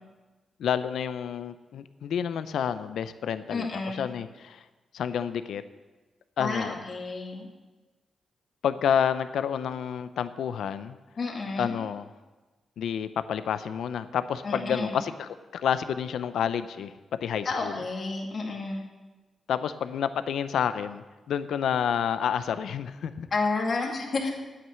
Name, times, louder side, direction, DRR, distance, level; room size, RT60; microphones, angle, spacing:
voice 1, 0.6-4.6 4.9-5.6 6.4-6.8 8.6-11.0 11.6-12.1 12.8-16.9 17.2-17.8 19.5-23.3, left 8 dB, 85° left, 12 dB, 0.5 m, -29 dB
voice 2, 3.5-4.1 6.4-7.5 11.2-11.8 14.4-15.0 17.4-18.8 23.3-24.3, left 3 dB, 55° left, 0 dB, 2.4 m, -30 dB
9.5 x 8.8 x 7.5 m, 1.2 s
cardioid pair, 80°, 0 cm